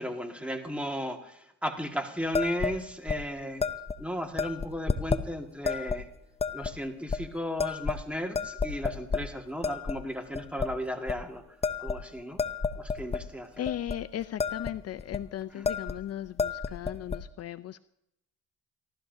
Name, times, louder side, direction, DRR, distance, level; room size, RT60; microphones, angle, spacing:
voice 1, 0.0-3.6 4.0-6.1 6.5-12.4 12.8-13.7 15.5-15.8, equal, 5° right, 3 dB, 1.8 m, -35 dB
sound 1, 2.3-2.8 3.1-3.2 3.6-4.0 4.4-5.2 5.7-6.0 6.4-6.7 7.1-7.2 7.6-8.1 8.3-9.2 9.6-10.0 10.3-10.7 11.1-11.2 11.6-13.2 13.7-14.0 14.2-14.7 15.0-15.2 15.7-16.0 16.3-17.2, left 5 dB, 20° left, 0.7 m, -30 dB
voice 2, 13.6-17.8, left 12 dB, 55° left, 14 dB, 0.5 m, -37 dB
28.0 x 12.5 x 2.7 m, 0.82 s
cardioid pair, 90°, 30 cm